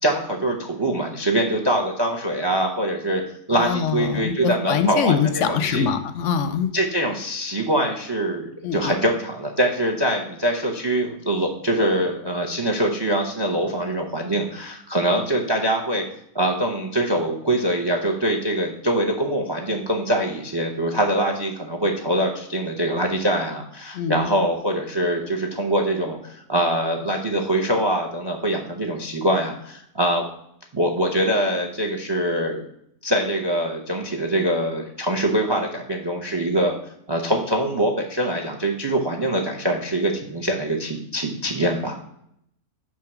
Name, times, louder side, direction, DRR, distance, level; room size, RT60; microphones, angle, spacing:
voice 1, 0.0-3.2 3.5-5.9 6.7-16.0 16.3-30.2 30.7-32.6 33.0-36.8 37.1-41.9, right 1 dB, 25° right, 3 dB, 0.6 m, -23 dB
voice 2, 3.5-6.7 8.6-8.9 23.9-24.3, left 7 dB, 65° left, 10 dB, 0.8 m, -23 dB
8.7 x 3.0 x 5.9 m, 0.73 s
omnidirectional pair, 1.6 m